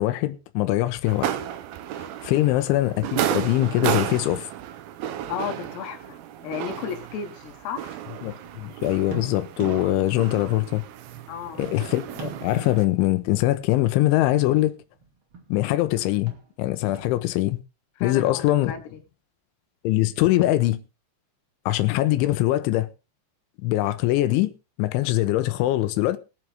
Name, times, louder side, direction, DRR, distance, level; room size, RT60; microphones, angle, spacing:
voice 1, 0.0-1.4 2.0-4.5 8.2-10.8 11.6-14.7 15.5-17.6 18.0-18.7 19.8-20.8 21.7-22.9 23.6-24.5 24.8-26.2, left 16 dB, 85° left, 3.3 m, -23 dB
sound 1, 1.0-12.9, right 11 dB, 75° right, 2.3 m, -33 dB
voice 2, 5.3-7.9 11.3-11.6 18.0-19.0, left 7 dB, 65° left, 3.3 m, -34 dB
sound 2, 7.6-10.1 11.0-12.8 13.9-15.6 15.8-17.3, right 5 dB, 35° right, 2.5 m, -44 dB
21.0 x 8.0 x 3.6 m
omnidirectional pair, 5.5 m